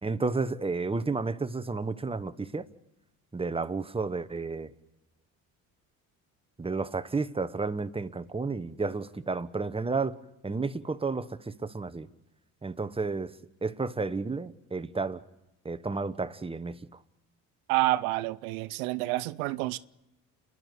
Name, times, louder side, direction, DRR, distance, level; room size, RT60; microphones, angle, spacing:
voice 1, 0.0-2.7 3.3-4.7 6.6-10.2 10.4-12.1 12.6-13.3 13.6-15.2 15.6-16.8, right 4 dB, 15° right, 1.1 m, -31 dB
voice 2, 17.7-19.8, right 18 dB, 90° right, 0.6 m, -28 dB
30.0 x 11.0 x 8.2 m
supercardioid pair, 65°, 41 cm